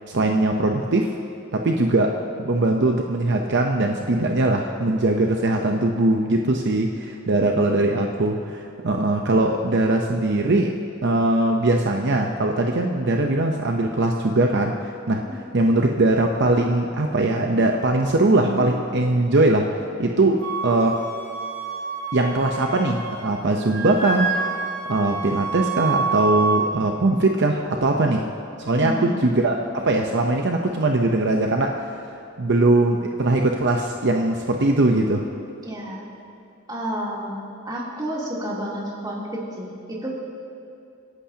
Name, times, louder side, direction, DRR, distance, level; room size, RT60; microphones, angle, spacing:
voice 1, 0.1-1.1 1.5-10.8 11.0-15.2 15.5-21.0 22.1-24.3 24.9-28.3 28.6-31.9 32.4-35.3, right 2 dB, 55° right, 2 dB, 0.8 m, -21 dB
Wind instrument woodwind instrument, 20.4-23.3 23.6-26.6, right 4 dB, 80° right, 2.3 m, -27 dB
voice 2, 28.8-29.3 35.6-36.1 36.7-40.1, equal, 20° right, -5 dB, 3.1 m, -30 dB
29.5 x 11.5 x 2.9 m, 2.6 s
head